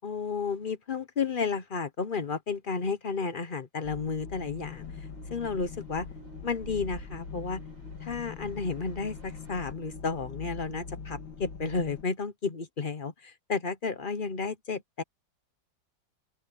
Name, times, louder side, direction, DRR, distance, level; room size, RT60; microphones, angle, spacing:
voice 1, 0.0-4.8 5.3-6.1 6.4-7.6 8.0-15.0, left 5 dB, 40° left, 0.7 m, -32 dB
sound 1, 3.8-12.0, left 5 dB, 80° left, 2.9 m, -42 dB
sound 2, 4.6-9.7, right 2 dB, 80° right, 8.2 m, -52 dB
open air
omnidirectional pair, 2.0 m